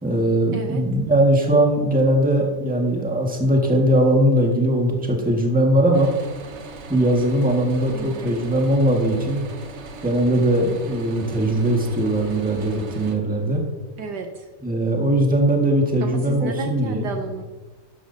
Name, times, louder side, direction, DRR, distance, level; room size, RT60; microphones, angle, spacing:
voice 1, 0.0-6.1 6.9-9.4 10.0-13.6 14.6-17.1, right 1 dB, 5° right, 0 dB, 1.4 m, -20 dB
voice 2, 0.5-0.8 7.9-8.4 14.0-14.5 16.0-17.4, right 5 dB, 70° right, 5 dB, 1.2 m, -32 dB
sound 1, 5.9-13.2, right 3 dB, 50° right, 0.9 m, -39 dB
12.5 x 11.0 x 2.7 m, 1.2 s
omnidirectional pair, 2.1 m